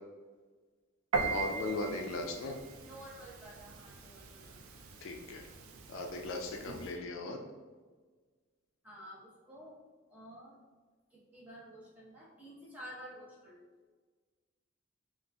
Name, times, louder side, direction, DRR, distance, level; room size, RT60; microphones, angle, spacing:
Piano, 1.1-7.0, right 4 dB, 80° right, 0.4 m, -40 dB
voice 1, 1.2-2.6 5.0-5.5 5.9-7.4, left 2 dB, 65° left, 3 dB, 0.3 m, -38 dB
voice 2, 1.7-2.2 2.8-4.6 8.8-9.8 10.1-10.6 11.1-13.7, equal, 5° right, -7 dB, 0.8 m, -51 dB
3.8 x 2.4 x 2.2 m, 1.4 s
head